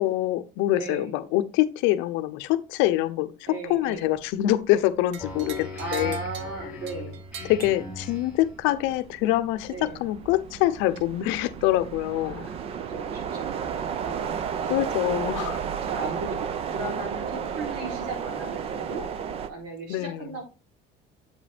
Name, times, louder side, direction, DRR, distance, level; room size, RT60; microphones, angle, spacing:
voice 1, 0.0-6.2 7.4-12.5 14.7-15.6 19.9-20.4, left 14 dB, 70° left, 0.7 m, -25 dB
voice 2, 0.8-1.2 3.5-4.2 5.8-7.2 9.7-10.0 12.1-19.1 19.5-20.4, right 3 dB, 90° right, 3.5 m, -37 dB
sound 1, 4.5-4.7 5.1-19.5, right 7 dB, 30° right, 0.5 m, -33 dB
sound 2, 5.1-8.5, right 8 dB, 60° right, 0.9 m, -43 dB
Speech synthesizer, 5.2-8.5, left 3 dB, 5° right, 2.1 m, -38 dB
7.9 x 5.2 x 3.4 m
cardioid pair, 175°, 20 cm